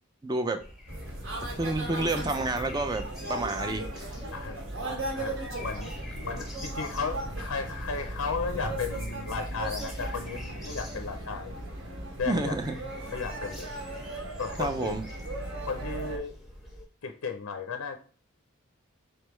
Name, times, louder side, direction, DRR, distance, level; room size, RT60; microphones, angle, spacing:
voice 1, 0.2-0.6 1.6-4.1 12.2-12.8 14.6-15.0, right 2 dB, 20° right, 7 dB, 0.4 m, -29 dB
sound 1, 0.6-16.9, left 1 dB, ahead, 0.8 m, -47 dB
sound 2, 0.9-16.2, right 1 dB, 65° right, 1.1 m, -37 dB
voice 2, 4.8-5.9 6.3-11.6 12.2-12.7 13.1-13.7 14.4-15.0 15.6-16.4 17.0-18.0, left 5 dB, 85° left, 6 dB, 0.5 m, -35 dB
4.3 x 3.4 x 3.0 m, 0.40 s
head